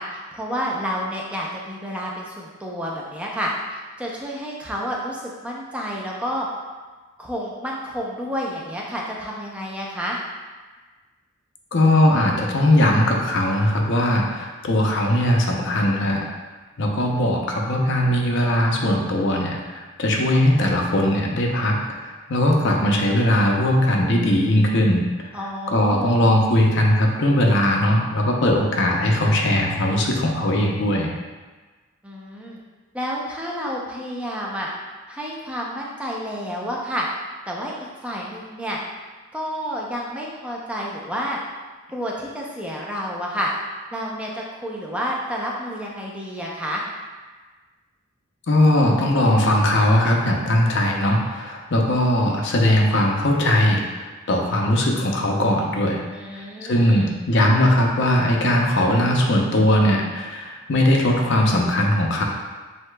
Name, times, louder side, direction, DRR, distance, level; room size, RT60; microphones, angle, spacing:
voice 1, 0.0-6.5 7.2-10.2 25.3-26.3 32.0-32.6 32.9-34.7 35.1-37.1 37.5-37.7 38.0-38.8 39.3-41.4 41.9-43.5 43.9-46.8 56.1-57.1, equal, 5° right, -3 dB, 0.6 m, -30 dB
voice 2, 11.7-16.2 16.8-25.1 25.7-31.1 48.5-56.0 56.3-62.2, left 1 dB, 60° left, 0 dB, 0.7 m, -19 dB
7.7 x 2.8 x 2.2 m, 1.3 s
head